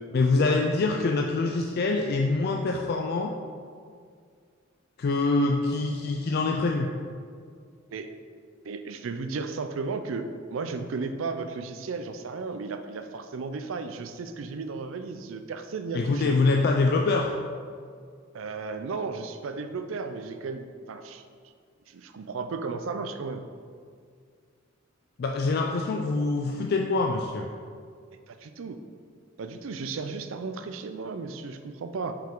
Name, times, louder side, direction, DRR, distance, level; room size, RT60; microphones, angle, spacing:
voice 1, 0.1-3.3 5.0-6.9 15.9-17.3 25.2-27.5, left 3 dB, 55° left, 2 dB, 0.4 m, -25 dB
voice 2, 8.6-16.4 18.3-21.2 21.9-23.4 28.3-28.8 29.4-32.1, right 4 dB, 85° right, 9 dB, 0.4 m, -34 dB
5.7 x 5.0 x 3.7 m, 2.1 s
head